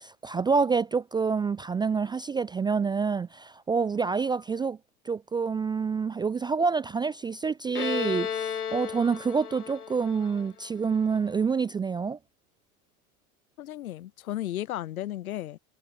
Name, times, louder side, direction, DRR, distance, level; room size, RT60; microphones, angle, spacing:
voice 1, 0.0-4.8 5.0-12.2, right 5 dB, 10° right, 0.5 m, -27 dB
Bowed string instrument, 7.7-11.3, left 8 dB, 85° left, 1.8 m, -34 dB
voice 2, 13.6-15.6, left 13 dB, 70° left, 2.6 m, -34 dB
hypercardioid pair, 90°, 44 cm